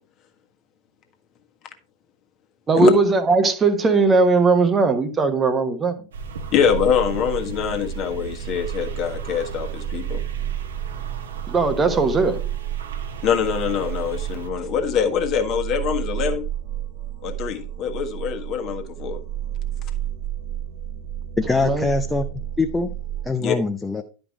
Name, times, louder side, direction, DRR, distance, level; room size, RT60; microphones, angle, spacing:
voice 1, 2.7-5.9 11.5-12.4 21.6-21.8, right 3 dB, 20° right, 1.2 m, -18 dB
sound 1, 6.1-14.5, right 4 dB, 65° right, 1.2 m, -37 dB
sound 2, 6.2-23.3, right 11 dB, 45° right, 1.4 m, -31 dB
voice 2, 6.5-10.2 13.2-16.5 17.2-19.2 23.4-23.6, left 8 dB, 35° left, 1.6 m, -24 dB
voice 3, 21.4-22.3 22.6-22.9 23.2-24.0, left 3 dB, 10° left, 0.7 m, -23 dB
11.5 x 5.2 x 4.8 m
figure-of-eight pair, 90°, 0 cm